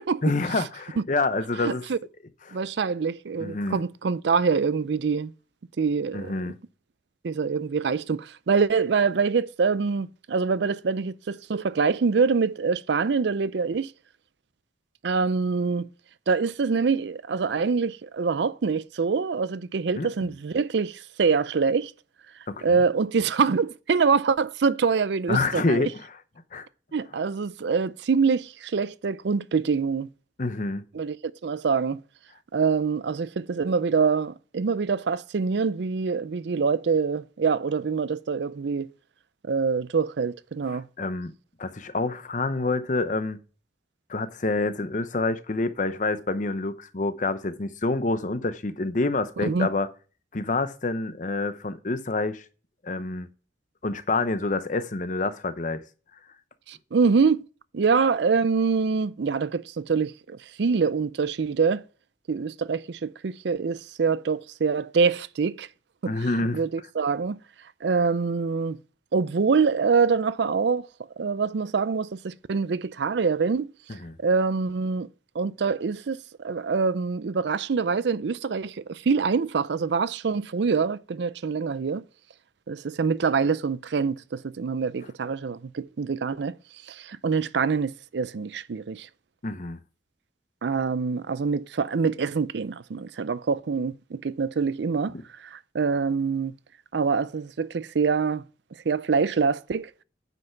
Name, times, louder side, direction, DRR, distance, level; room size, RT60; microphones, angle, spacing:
voice 1, 0.2-1.8 2.5-2.6 3.4-3.8 6.1-6.6 20.0-20.1 22.5-22.8 25.3-26.1 26.5-26.7 30.4-30.8 40.7-41.3 41.6-43.4 44.1-49.9 50.3-52.4 52.8-53.3 53.8-55.8 66.1-66.6 74.0-74.1 89.4-89.8, left 3 dB, 45° left, 0.8 m, -27 dB
voice 2, 1.6-2.0 2.5-5.3 5.8-6.3 7.2-13.9 15.0-15.9 16.3-21.9 22.6-25.9 26.9-30.1 30.9-31.2 31.4-32.0 32.5-38.9 39.5-40.9 49.4-49.7 56.7-57.4 57.7-61.8 62.3-65.7 66.0-66.1 66.5-67.4 67.8-68.8 69.1-70.9 71.2-73.7 74.2-75.1 75.3-82.0 82.7-86.6 86.9-89.1 90.6-95.1 95.4-96.5 96.9-98.4 98.9-99.9, right 5 dB, 70° right, 0.5 m, -25 dB
9.2 x 5.5 x 5.8 m
head